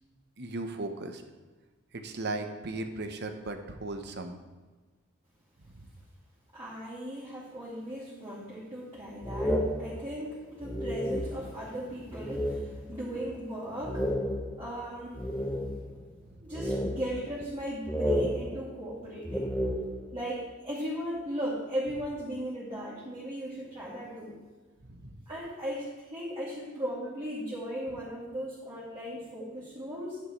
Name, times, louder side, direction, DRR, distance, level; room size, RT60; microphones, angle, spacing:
voice 1, 0.4-1.2 1.9-4.3 5.7-5.9 16.2-16.4 24.8-25.1, right 2 dB, 55° right, 6 dB, 0.9 m, -37 dB
voice 2, 6.5-14.1 14.6-16.0 16.4-19.5 20.1-24.4 25.3-30.2, equal, 25° right, -10 dB, 2.7 m, -37 dB
sound 1, 9.2-11.7 12.1-13.0 13.3-13.4 13.8-16.0 16.5-17.6 17.9-20.2, equal, 5° left, 0.6 m, -32 dB
11.0 x 9.1 x 3.2 m, 1.3 s
head